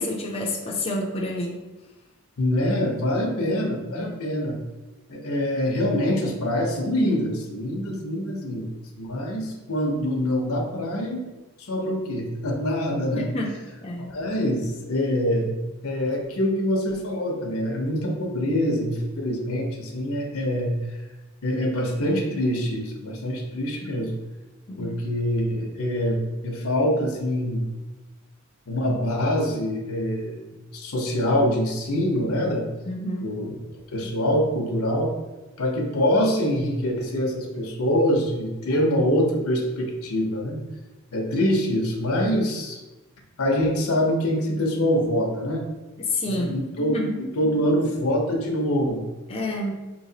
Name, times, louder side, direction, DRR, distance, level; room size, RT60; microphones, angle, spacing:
voice 1, 0.0-1.6 4.0-4.2 13.1-13.5 13.8-14.1 24.7-25.0 32.9-33.3 46.0-47.1 49.3-49.7, left 1 dB, 30° left, -2 dB, 0.4 m, -29 dB
voice 2, 2.4-4.6 5.1-11.2 11.6-13.3 14.1-15.5 15.8-20.8 21.4-24.1 24.8-27.7 28.7-32.7 33.2-33.6 33.9-35.1 35.6-40.6 41.1-42.8 43.4-45.6 46.3-49.0, equal, 80° left, 1 dB, 0.7 m, -25 dB
4.3 x 3.0 x 2.8 m, 1.1 s
head